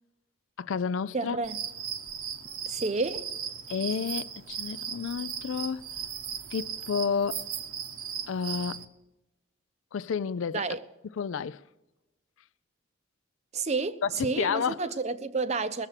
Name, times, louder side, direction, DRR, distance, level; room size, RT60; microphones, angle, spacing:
voice 1, 0.6-1.4 3.7-5.8 6.5-7.5 8.3-8.8 9.9-10.6 11.2-11.6 14.0-14.8, left 6 dB, 70° left, 0.4 m, -30 dB
voice 2, 1.1-1.6 2.7-3.3 10.5-10.8 13.5-15.9, right 3 dB, 30° right, 0.6 m, -30 dB
sound 1, 1.4-8.8, right 8 dB, 85° right, 1.0 m, -37 dB
20.5 x 7.3 x 6.6 m
head